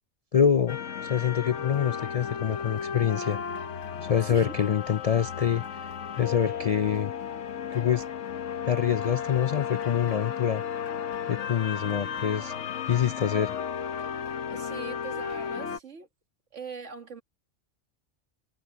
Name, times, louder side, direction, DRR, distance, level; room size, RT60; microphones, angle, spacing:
voice 1, 0.3-3.4 4.0-5.9 6.2-7.1 7.7-8.0 8.7-10.6 11.3-12.5 12.9-13.5, left 8 dB, 60° left, 0.4 m, -26 dB
sound 1, 0.7-15.8, left 7 dB, 85° left, 1.3 m, -34 dB
voice 2, 4.2-4.5 14.5-16.1 16.5-17.2, right 4 dB, 80° right, 2.3 m, -41 dB
omnidirectional pair, 1.2 m